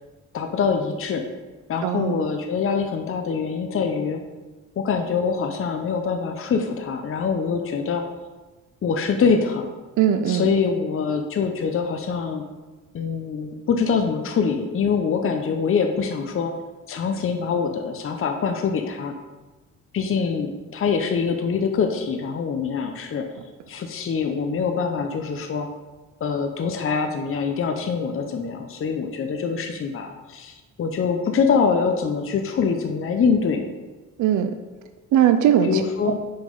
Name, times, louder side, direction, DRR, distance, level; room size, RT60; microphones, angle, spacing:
voice 1, 0.3-1.2 1.7-4.2 4.8-8.0 8.8-9.6 10.3-12.4 12.9-16.5 16.9-19.1 19.9-23.3 23.7-25.7 26.2-33.6 35.6-36.2, left 5 dB, 45° left, 5 dB, 0.8 m, -24 dB
voice 2, 1.8-2.2 10.0-10.5 34.2-34.5 35.1-36.2, right 10 dB, 75° right, 8 dB, 0.5 m, -20 dB
5.7 x 5.3 x 5.4 m, 1.2 s
cardioid pair, 90°, 30 cm